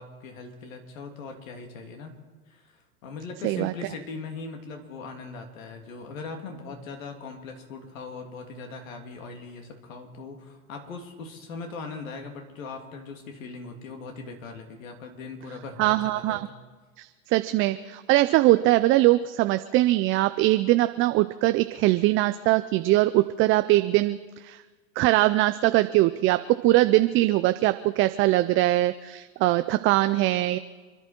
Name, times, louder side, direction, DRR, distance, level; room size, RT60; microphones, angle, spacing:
voice 1, 0.0-2.1 2.5-16.5, left 4 dB, 70° left, 4 dB, 3.1 m, -40 dB
voice 2, 15.8-16.5 17.0-24.2 24.4-24.6 25.0-30.6, right 17 dB, 30° right, 10 dB, 0.5 m, -22 dB
28.5 x 11.0 x 4.5 m, 1.4 s
hypercardioid pair, 105°, 41 cm